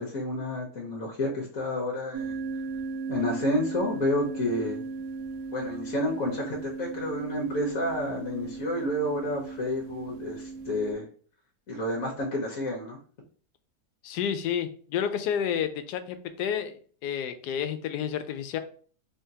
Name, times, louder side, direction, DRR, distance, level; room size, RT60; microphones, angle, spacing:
voice 1, 0.0-2.4 3.1-4.8 5.5-11.1 11.7-13.0, left 1 dB, 60° left, -1 dB, 1.3 m, -30 dB
sound 1, 2.1-10.9, right 4 dB, 75° right, 1.1 m, -37 dB
voice 2, 14.0-18.6, left 8 dB, 80° left, 9 dB, 1.1 m, -30 dB
3.7 x 3.5 x 2.7 m, 0.43 s
omnidirectional pair, 1.8 m